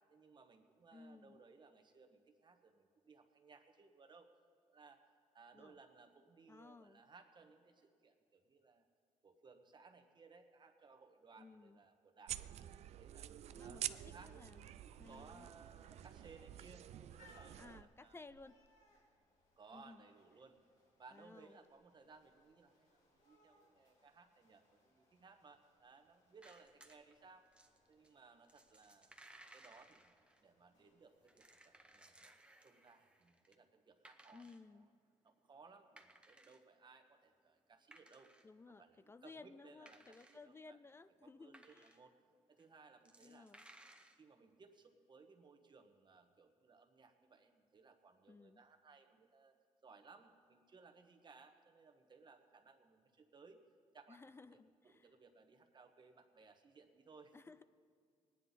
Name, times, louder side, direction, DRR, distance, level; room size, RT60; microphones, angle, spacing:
voice 1, 0.1-4.3 4.7-5.1 5.3-8.8 9.2-13.3 13.6-18.2 19.6-20.6 21.0-27.4 27.9-29.1 29.5-32.3 32.6-34.9 35.2-38.3 38.7-40.8 41.2-42.1 42.5-43.5 43.9-49.5 49.8-53.6 53.9-54.2 54.5-54.6 54.8-57.3, right 4 dB, 40° right, 6 dB, 1.2 m, -63 dB
voice 2, 0.9-1.4 5.5-5.8 6.5-7.0 11.4-11.8 13.5-14.7 15.0-15.5 17.6-18.6 19.7-20.0 21.1-21.6 34.3-34.9 38.4-42.0 43.2-43.6 48.3-48.6 54.1-55.1 57.3-57.6, left 3 dB, 20° left, 14 dB, 0.4 m, -58 dB
sound 1, 12.3-17.8, right 11 dB, 65° right, 0.4 m, -48 dB
sound 2, 14.4-32.0, left 2 dB, 80° left, 3.0 m, -73 dB
sound 3, 26.4-27.1 27.5-30.4 31.0-33.6 33.9-34.6 35.3-35.4 35.7-36.7 37.1-37.2 37.6-38.5 38.8-38.9 39.7-40.4 40.9-42.1 42.6-42.7 42.9-44.2, right 1 dB, 10° right, 0.9 m, -63 dB
19.0 x 9.9 x 4.1 m, 2.1 s
cardioid pair, 85°, 12 cm